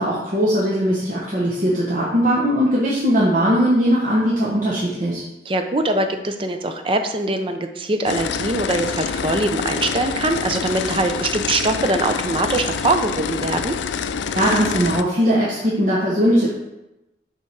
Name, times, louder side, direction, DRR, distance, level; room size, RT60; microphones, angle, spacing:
voice 1, 0.0-5.2 14.3-16.5, equal, 45° right, -6 dB, 1.1 m, -19 dB
voice 2, 5.5-13.8, right 2 dB, 30° right, 7 dB, 0.5 m, -22 dB
sound 1, 8.1-15.0, left 6 dB, 85° left, 0.4 m, -26 dB
7.0 x 3.6 x 4.6 m, 0.93 s
head